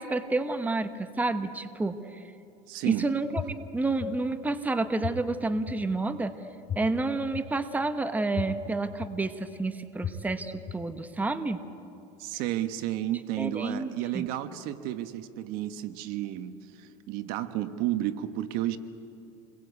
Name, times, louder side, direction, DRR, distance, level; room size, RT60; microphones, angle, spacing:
voice 1, 0.0-2.2 2.8-3.4 3.7-6.3 6.7-11.6 13.4-13.9 14.1-14.2, right 2 dB, 10° right, 9 dB, 1.2 m, -29 dB
voice 2, 2.7-3.1 12.2-18.8, right 13 dB, 65° right, 10 dB, 1.3 m, -32 dB
sound 1, 3.4-3.5 4.0-4.1 5.0-5.1 5.7-5.8 6.7-6.8 7.3-7.4 8.4-8.5 9.0-9.1 10.0-10.1 10.7-10.8, left 9 dB, 30° left, 1.3 m, -31 dB
29.0 x 21.5 x 8.3 m, 2.7 s
supercardioid pair, 130°, 16 cm